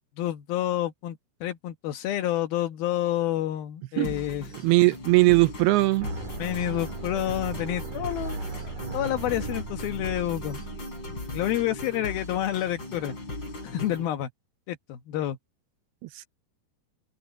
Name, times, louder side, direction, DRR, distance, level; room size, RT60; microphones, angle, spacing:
voice 1, 0.2-4.5 6.4-8.4 8.9-10.6 11.3-13.1 13.6-14.3 14.7-15.4, left 13 dB, 70° left, 2.8 m, -29 dB
sound 1, 4.0-14.0, left 2 dB, 25° left, 5.6 m, -38 dB
voice 2, 4.6-6.1 16.0-16.3, right 22 dB, 80° right, 2.5 m, -20 dB
sound 2, 6.0-12.0, right 4 dB, 50° right, 5.9 m, -37 dB
omnidirectional pair, 4.9 m